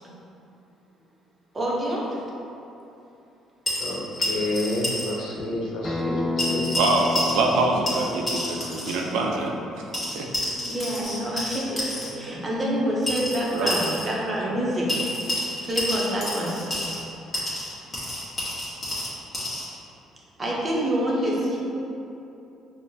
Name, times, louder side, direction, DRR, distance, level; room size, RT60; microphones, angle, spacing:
voice 1, 1.5-2.2 10.6-11.8 12.1-15.1 15.7-16.6 20.4-21.6, equal, 25° right, -5 dB, 0.8 m, -26 dB
sound 1, 3.7-5.1 5.4-5.5 6.4-7.6 7.9-9.0 9.9-12.1 13.1-14.1 14.9-17.0 17.3-19.7, left 1 dB, 20° left, 1.1 m, -29 dB
voice 2, 3.8-6.8, left 1 dB, 75° left, -3 dB, 0.7 m, -29 dB
Acoustic guitar, 5.8-11.0, left 4 dB, 5° left, 0.4 m, -33 dB
voice 3, 6.8-9.6 10.1-10.3 12.0-12.3 13.5-13.7, right 3 dB, 85° right, 0 dB, 0.4 m, -25 dB
5.1 x 2.0 x 2.7 m, 2.9 s
cardioid pair, 105°, 0 cm